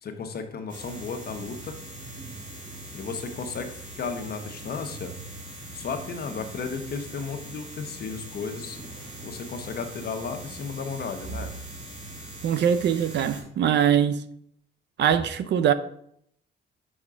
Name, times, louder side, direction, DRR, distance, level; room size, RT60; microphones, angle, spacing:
voice 1, 0.0-1.8 2.9-5.1 5.7-8.8 9.2-11.5, left 5 dB, 55° left, 1.0 m, -34 dB
sound 1, 0.7-13.4, right 2 dB, 40° right, 2.3 m, -41 dB
voice 2, 12.4-14.2 15.0-15.7, right 9 dB, 65° right, 0.5 m, -22 dB
6.2 x 5.0 x 3.6 m
cardioid pair, 90°, 20 cm